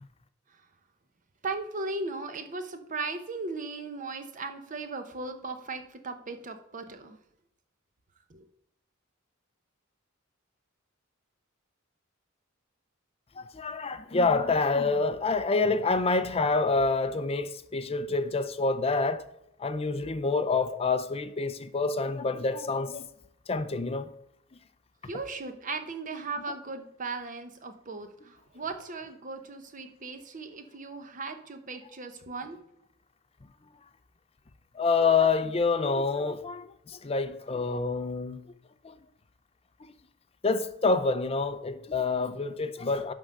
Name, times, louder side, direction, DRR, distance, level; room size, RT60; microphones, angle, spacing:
voice 1, 1.4-7.2 8.3-8.5 25.1-32.6, right 3 dB, 40° right, 0.9 m, -37 dB
voice 2, 13.4-19.3 19.6-23.1 23.5-24.1 34.7-38.4 38.8-39.0 40.4-43.1, left 4 dB, 30° left, 0.5 m, -27 dB
11.0 x 3.7 x 6.5 m
head